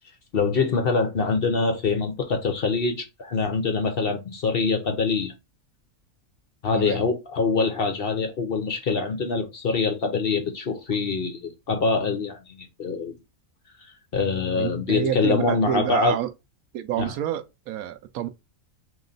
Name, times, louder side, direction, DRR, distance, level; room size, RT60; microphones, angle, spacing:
voice 1, 0.3-5.3 6.6-13.1 14.1-16.2 17.0-17.1, left 4 dB, 50° left, 0.8 m, -24 dB
voice 2, 6.7-7.1 14.6-16.3 16.7-18.3, right 10 dB, 90° right, 1.0 m, -28 dB
3.1 x 3.0 x 3.8 m
omnidirectional pair, 1.5 m